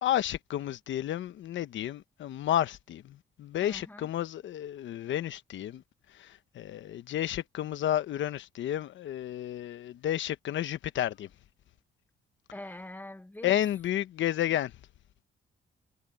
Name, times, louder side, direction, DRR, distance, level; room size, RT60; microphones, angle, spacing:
voice 1, 0.0-5.8 6.1-11.3 13.4-14.7, left 12 dB, 70° left, 1.1 m, -31 dB
voice 2, 3.6-4.1 12.5-13.6, left 1 dB, 10° left, 1.3 m, -44 dB
cardioid pair, 90°, 20 cm